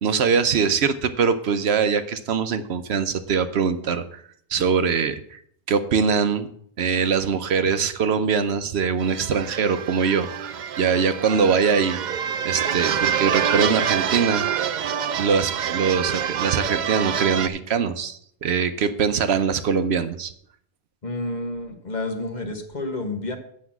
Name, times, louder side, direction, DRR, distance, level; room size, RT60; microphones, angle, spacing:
voice 1, 0.0-4.2 4.5-5.4 5.7-6.5 6.8-12.0 12.4-14.5 15.2-20.3, right 6 dB, 70° right, 10 dB, 1.0 m, -22 dB
sound 1, 9.0-17.5, right 8 dB, 55° right, 0.5 m, -26 dB
voice 2, 21.0-23.4, left 2 dB, 40° left, 5 dB, 1.4 m, -30 dB
8.0 x 6.3 x 7.3 m, 0.65 s
omnidirectional pair, 1.1 m